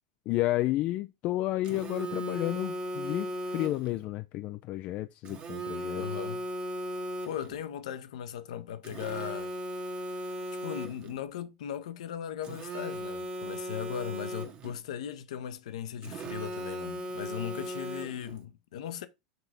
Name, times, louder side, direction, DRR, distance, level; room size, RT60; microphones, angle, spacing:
voice 1, 0.3-6.0, left 16 dB, 40° left, 0.4 m, -31 dB
Telephone, 1.6-4.0 5.3-7.6 8.8-11.2 12.4-14.8 16.0-18.4, equal, 30° right, 1.2 m, -37 dB
voice 2, 5.9-6.4 7.3-9.5 10.2-10.3 10.6-19.1, left 9 dB, 60° left, 0.7 m, -38 dB
6.7 x 3.9 x 4.2 m
figure-of-eight pair, 85°, 4 cm